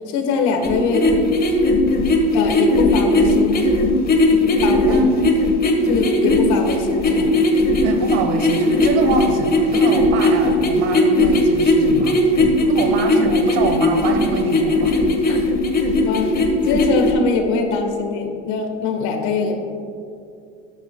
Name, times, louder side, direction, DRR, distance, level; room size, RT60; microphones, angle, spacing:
voice 1, 0.1-1.1 2.3-3.6 4.6-5.0 5.9-7.4 15.3-15.4 16.0-16.4 16.6-19.6, left 4 dB, 65° left, 4 dB, 1.4 m, -22 dB
sound 1, 0.6-17.1, left 2 dB, 30° left, 1.2 m, -17 dB
voice 2, 4.9-5.3 7.8-12.2 12.7-15.5, right 4 dB, 80° right, 6 dB, 1.3 m, -24 dB
13.5 x 9.1 x 2.2 m, 2.5 s
supercardioid pair, 100°, 32 cm